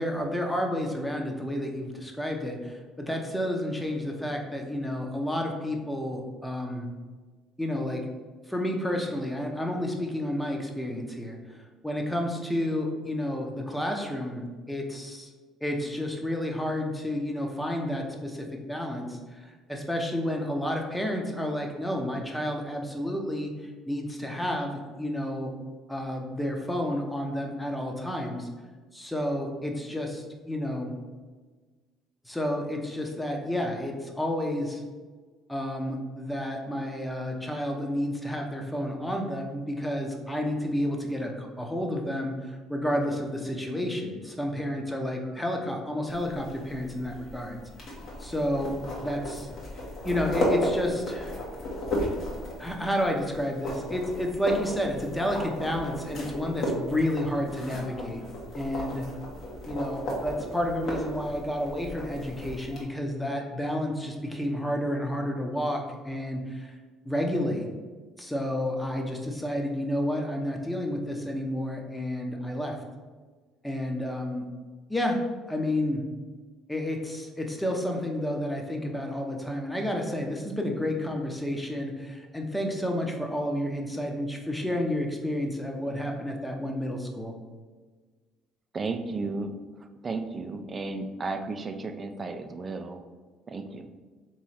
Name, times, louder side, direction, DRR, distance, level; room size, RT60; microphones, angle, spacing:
voice 1, 0.0-6.9 7.6-8.1 8.5-11.6 11.8-15.3 15.6-23.5 23.9-25.5 25.9-28.5 28.9-30.9 32.2-34.8 35.5-47.6 48.2-48.7 49.0-49.5 50.0-51.4 52.6-58.2 58.5-59.1 59.7-66.7 67.0-67.7 68.2-72.8 73.6-74.4 74.9-75.2 75.5-76.0 76.7-87.3, left 1 dB, 5° left, 2 dB, 0.8 m, -30 dB
sound 1, 46.1-62.8, equal, 55° left, 1.4 m, -34 dB
voice 2, 88.7-89.5 89.8-93.0 93.5-93.9, right 3 dB, 35° right, 7 dB, 0.5 m, -34 dB
3.6 x 3.2 x 4.2 m, 1.4 s
hypercardioid pair, 70°, 0 cm